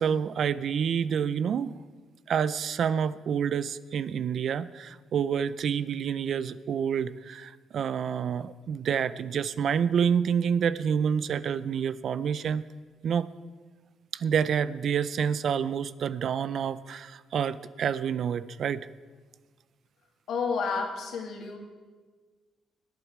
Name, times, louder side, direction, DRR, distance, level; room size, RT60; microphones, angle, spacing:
voice 1, 0.0-1.7 2.3-12.6 13.0-13.3 14.1-18.9, right 7 dB, 60° right, 16 dB, 0.5 m, -28 dB
voice 2, 20.3-21.6, left 5 dB, 70° left, 2 dB, 2.4 m, -30 dB
21.5 x 8.1 x 4.9 m, 1.4 s
cardioid pair, 90°, 0 cm